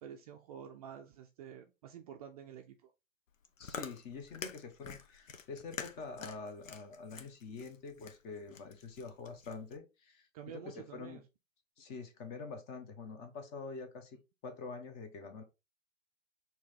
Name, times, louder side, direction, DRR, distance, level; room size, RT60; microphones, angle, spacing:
voice 1, 0.0-2.9 10.3-11.2, right 9 dB, 30° right, 0.4 m, -49 dB
Chewing mastication, 3.3-9.8, left 6 dB, 80° left, 0.8 m, -48 dB
voice 2, 3.6-11.2 11.8-15.4, left 4 dB, 25° left, 0.9 m, -46 dB
4.5 x 2.8 x 3.7 m
figure-of-eight pair, 115°, 38 cm